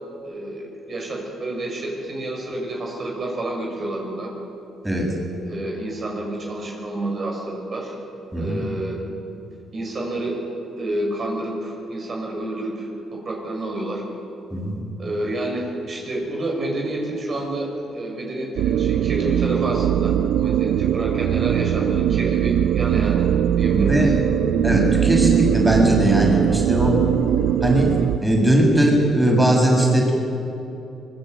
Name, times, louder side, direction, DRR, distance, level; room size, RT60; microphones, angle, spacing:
voice 1, 0.2-4.3 5.4-7.9 8.3-9.0 9.7-10.4 10.8-14.0 15.0-23.3 23.6-24.1, right 1 dB, 45° right, -1 dB, 6.0 m, -29 dB
voice 2, 8.3-8.6 14.5-14.8 23.7-24.1 24.6-27.0 27.6-27.9 28.2-30.1, right 1 dB, 5° right, -1 dB, 6.9 m, -19 dB
sound 1, 18.6-28.2, right 10 dB, 80° right, 0.6 m, -20 dB
25.0 x 21.0 x 8.1 m, 2.9 s
cardioid pair, 90°, 0 cm